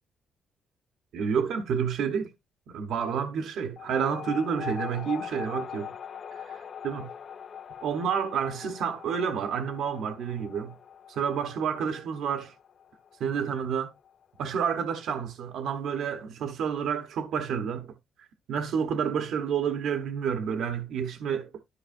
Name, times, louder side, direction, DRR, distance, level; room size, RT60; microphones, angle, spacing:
voice 1, 1.1-2.3 2.7-5.9 6.3-7.1 7.8-10.7 11.1-12.5 13.2-13.9 14.4-17.9 18.5-21.6, right 7 dB, 75° right, 1.0 m, -29 dB
sound 1, 3.8-14.7, left 8 dB, 50° left, 0.5 m, -42 dB
13.0 x 4.8 x 2.5 m
cardioid pair, 90°, 0 cm